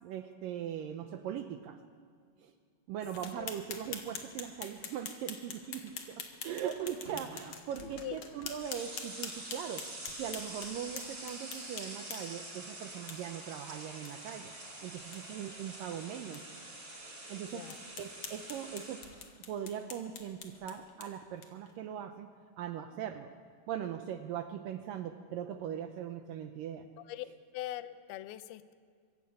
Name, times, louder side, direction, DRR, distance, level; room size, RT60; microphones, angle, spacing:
voice 1, 0.0-1.8 2.4-2.5 2.9-9.9 10.2-14.5 14.8-16.4 17.3-17.7 18.0-19.0 19.5-22.3 22.6-23.3 23.7-26.9, right 9 dB, 75° right, 8 dB, 2.1 m, -40 dB
sound 1, 3.1-12.5 13.1-13.2 13.5-13.6 14.0-14.1 14.5-14.6 15.0-15.2 15.7-15.8 16.3-16.4 16.9-17.0 17.7-21.7, left 6 dB, 50° left, 2.2 m, -45 dB
sound 2, 4.9-5.2 7.0-7.2 7.7-7.9 8.3-19.2, right 2 dB, 25° right, 5.3 m, -46 dB
voice 2, 7.8-8.2 17.5-17.8 27.0-27.3 27.5-28.7, left 14 dB, 75° left, 12 dB, 2.6 m, -42 dB
23.5 x 14.0 x 8.7 m, 2.2 s
omnidirectional pair, 4.8 m